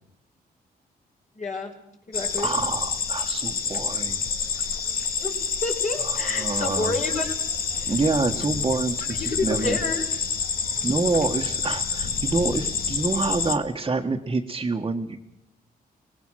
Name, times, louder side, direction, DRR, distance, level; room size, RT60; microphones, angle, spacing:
voice 1, 1.3-1.7 2.1-2.5 5.2-5.4 5.6-7.3 7.8-7.9 9.0-10.0, left 3 dB, 45° left, 1 dB, 5.0 m, -29 dB
sound 1, 2.1-13.5, left 6 dB, 65° left, 2.0 m, -28 dB
voice 2, 2.4-4.3 6.0-6.9 7.9-9.8 10.8-15.2, right 3 dB, 25° right, -2 dB, 1.6 m, -27 dB
24.5 x 19.5 x 6.4 m, 0.82 s
cardioid pair, 105°, 17 cm